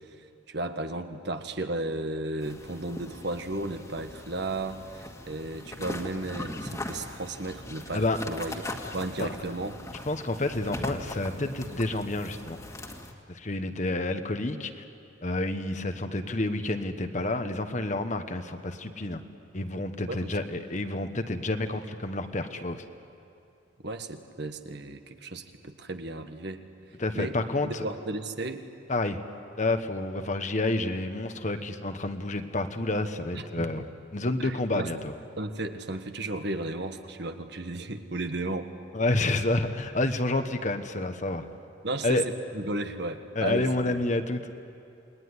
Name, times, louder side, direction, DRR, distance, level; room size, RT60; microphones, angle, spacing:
voice 1, 0.5-8.6 8.9-9.8 20.1-20.4 23.8-26.6 27.1-28.6 33.3-33.6 34.4-34.9 35.4-38.7 41.8-44.0, right 2 dB, 60° right, 7 dB, 1.5 m, -34 dB
sound 1, 2.4-13.1, left 1 dB, 15° left, 2.0 m, -40 dB
voice 2, 10.1-12.6 13.3-14.8 15.2-19.2 19.5-22.8 27.0-27.8 28.9-29.2 29.6-33.9 34.1-35.1 38.9-41.5 42.0-42.2 43.3-44.4, left 2 dB, 40° left, 8 dB, 1.3 m, -29 dB
28.0 x 21.0 x 9.8 m, 2.6 s
head